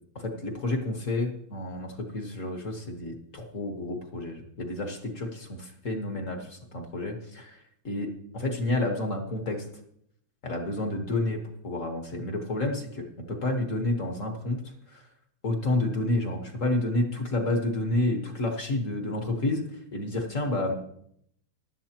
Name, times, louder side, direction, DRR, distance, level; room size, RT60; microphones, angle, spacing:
voice 1, 0.1-7.6 7.8-9.6 10.4-14.6 14.9-15.0 15.4-20.7, left 2 dB, 45° left, 3 dB, 1.5 m, -30 dB
15.0 x 11.5 x 2.9 m, 0.71 s
omnidirectional pair, 2.2 m